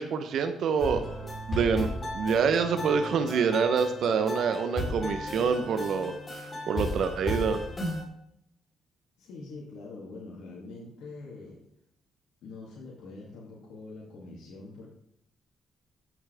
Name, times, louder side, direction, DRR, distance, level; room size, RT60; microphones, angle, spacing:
voice 1, 0.0-7.6, right 6 dB, 70° right, 8 dB, 0.9 m, -27 dB
sound 1, 0.8-8.0, left 1 dB, 30° left, 3.7 m, -35 dB
voice 2, 9.2-11.6 12.4-14.9, left 3 dB, 80° left, -4 dB, 2.6 m, -44 dB
13.5 x 7.2 x 3.5 m, 0.74 s
cardioid pair, 90°, 0 cm